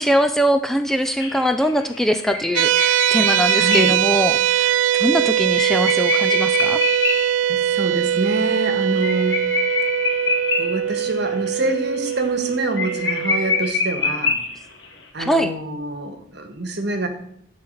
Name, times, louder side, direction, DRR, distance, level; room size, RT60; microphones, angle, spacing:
voice 1, 0.0-6.8 15.2-15.5, equal, ahead, 7 dB, 0.4 m, -22 dB
sound 1, 1.2-7.4 7.7-7.8 8.1-8.2 8.5-11.1 11.5-11.8 12.1-12.2 12.4-12.5 12.8-14.8, left 4 dB, 65° left, 2.1 m, -25 dB
sound 2, 2.6-13.7, right 11 dB, 75° right, 0.3 m, -21 dB
voice 2, 3.6-4.0 7.5-9.4 10.6-14.4 15.1-17.1, right 2 dB, 55° right, 7 dB, 1.5 m, -26 dB
12.5 x 4.2 x 7.9 m, 0.71 s
head